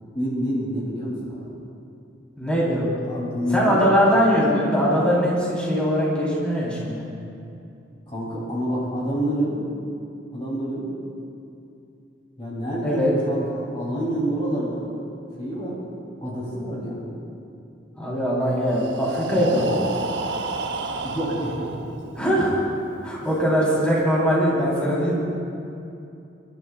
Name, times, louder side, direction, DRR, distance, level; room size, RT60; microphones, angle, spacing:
voice 1, 0.1-1.5 3.0-3.8 8.1-9.6 10.3-10.9 12.4-13.0 13.3-14.9 15.4-15.8 16.2-17.2 21.0-22.2 23.2-23.3, equal, 30° left, -6 dB, 3.0 m, -28 dB
voice 2, 2.4-3.0 3.5-7.0 12.8-13.1 18.0-19.8 22.2-22.5 23.0-25.2, equal, 5° left, -7 dB, 3.7 m, -21 dB
Breathing, 18.5-22.4, right 3 dB, 70° right, 0.8 m, -31 dB
29.0 x 13.0 x 2.4 m, 2.7 s
head